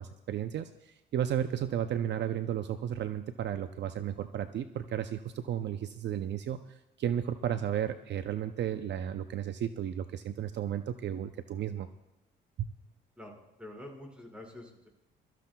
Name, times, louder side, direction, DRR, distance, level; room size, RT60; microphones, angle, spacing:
voice 1, 0.0-11.9, right 10 dB, 60° right, 10 dB, 0.6 m, -34 dB
voice 2, 13.2-14.9, left 1 dB, 5° right, 0 dB, 5.2 m, -47 dB
22.5 x 14.0 x 2.3 m, 0.89 s
cardioid pair, 90°, 20 cm